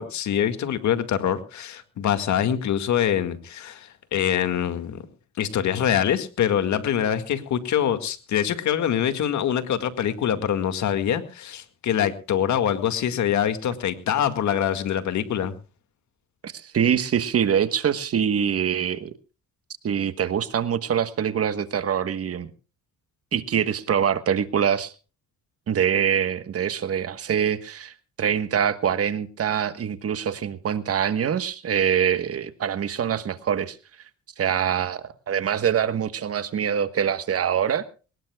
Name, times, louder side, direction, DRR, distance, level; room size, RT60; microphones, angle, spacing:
voice 1, 0.0-5.0 5.4-15.6, left 9 dB, 70° left, 10 dB, 2.0 m, -24 dB
voice 2, 16.4-19.1 19.8-22.5 23.3-24.9 25.7-33.8 34.4-37.8, right 8 dB, 50° right, 13 dB, 1.3 m, -24 dB
22.0 x 19.0 x 2.3 m, 0.34 s
cardioid pair, 90°, 30 cm